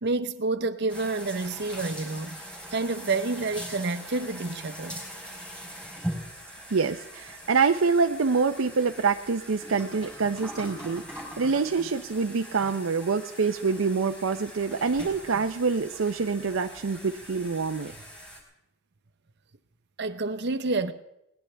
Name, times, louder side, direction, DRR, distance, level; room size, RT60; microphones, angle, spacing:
voice 1, 0.0-2.4 2.7-5.0 20.0-20.9, right 3 dB, 60° right, 0.9 m, -29 dB
sound 1, 0.9-18.4, equal, 5° left, 4.4 m, -41 dB
voice 2, 6.7-11.0 11.4-17.9, right 5 dB, 80° right, 0.6 m, -26 dB
21.0 x 18.5 x 3.4 m
head